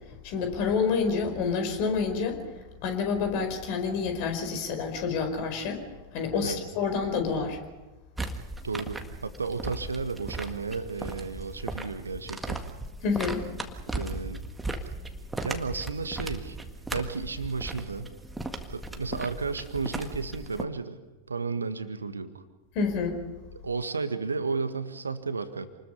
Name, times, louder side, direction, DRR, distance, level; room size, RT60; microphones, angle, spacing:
voice 1, 0.2-2.4 2.8-5.8 6.1-7.6 13.0-13.4 22.7-23.2, left 5 dB, 45° left, 6 dB, 4.8 m, -28 dB
sound 1, 8.2-20.6, right 2 dB, 10° right, 1.9 m, -37 dB
voice 2, 8.6-12.7 13.9-14.4 15.4-16.6 16.9-18.1 18.7-21.0 21.3-22.4 23.5-25.7, right 4 dB, 75° right, 10 dB, 1.6 m, -33 dB
28.5 x 20.5 x 5.5 m, 1.1 s
figure-of-eight pair, 90°, 0 cm